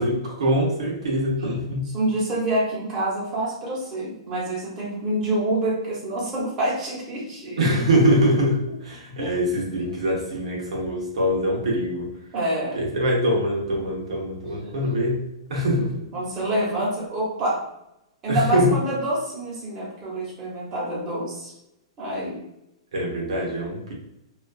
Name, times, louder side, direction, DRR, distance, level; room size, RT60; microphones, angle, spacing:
voice 1, 0.0-1.9 7.6-12.1 12.7-15.2 15.5-16.0 18.3-18.7 22.9-23.9, equal, 80° right, -2 dB, 0.8 m, -23 dB
voice 2, 1.9-7.6 9.2-9.3 12.3-12.8 14.6-14.8 16.1-17.6 18.2-21.5 22.0-22.4, right 1 dB, 25° right, -5 dB, 1.0 m, -27 dB
2.4 x 2.3 x 2.3 m, 0.87 s
hypercardioid pair, 145°, 3 cm